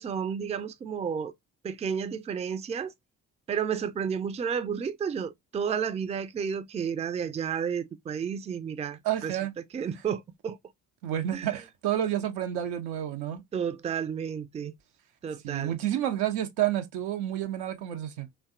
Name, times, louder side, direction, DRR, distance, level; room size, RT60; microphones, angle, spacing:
voice 1, 0.0-1.3 1.6-2.9 3.5-9.3 9.7-10.6 11.3-11.6 13.5-14.7 15.2-15.8, right 7 dB, 20° right, 0.3 m, -32 dB
voice 2, 9.0-9.5 11.0-13.4 15.4-18.3, right 11 dB, 85° right, 0.5 m, -29 dB
2.7 x 2.2 x 2.3 m
hypercardioid pair, 40°, 37 cm